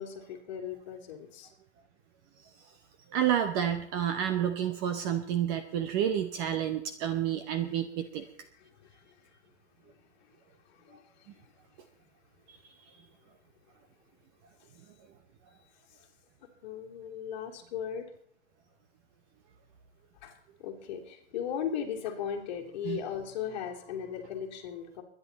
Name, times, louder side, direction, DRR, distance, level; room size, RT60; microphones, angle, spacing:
voice 1, 0.0-1.5 8.8-9.3 9.8-9.9 10.8-11.0 11.4-11.5 16.6-18.1 20.2-20.3 20.6-25.0, left 8 dB, 40° left, 1 dB, 3.2 m, -37 dB
voice 2, 3.1-8.2 22.8-23.0, right 9 dB, 20° right, 9 dB, 0.7 m, -29 dB
23.0 x 10.5 x 4.1 m, 0.67 s
hypercardioid pair, 165°, 34 cm